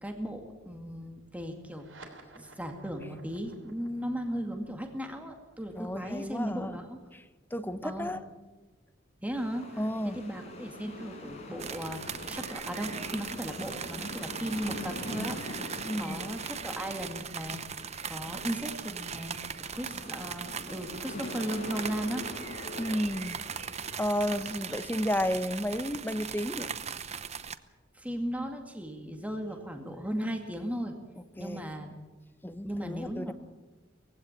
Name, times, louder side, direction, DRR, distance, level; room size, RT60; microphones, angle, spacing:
voice 1, 0.0-7.0 7.8-8.1 9.2-15.7 16.0-19.4 19.7-22.3 27.9-30.9 31.4-31.9 32.6-33.3, equal, 10° right, 4 dB, 2.2 m, -36 dB
sound 1, 1.7-8.5, right 3 dB, 75° right, 3.3 m, -56 dB
voice 2, 5.7-6.8 7.1-7.2 7.5-8.2 9.8-10.2 15.8-16.3 22.8-23.4 24.0-26.7 31.4-31.6 32.4-33.3, equal, 10° left, 11 dB, 0.9 m, -32 dB
sound 2, 9.4-25.3, left 1 dB, 35° left, 4.9 m, -44 dB
sound 3, 11.6-27.6, right 7 dB, 35° right, 0.8 m, -39 dB
20.0 x 16.0 x 8.8 m, 1.2 s
head